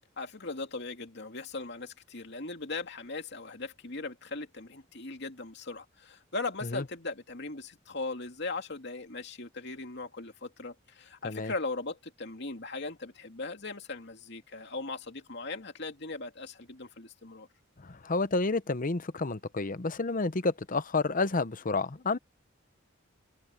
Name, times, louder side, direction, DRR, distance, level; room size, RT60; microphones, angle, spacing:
voice 1, 0.2-17.5, left 3 dB, 60° left, 2.6 m, -39 dB
voice 2, 18.0-22.2, left 3 dB, 45° left, 0.8 m, -30 dB
open air
head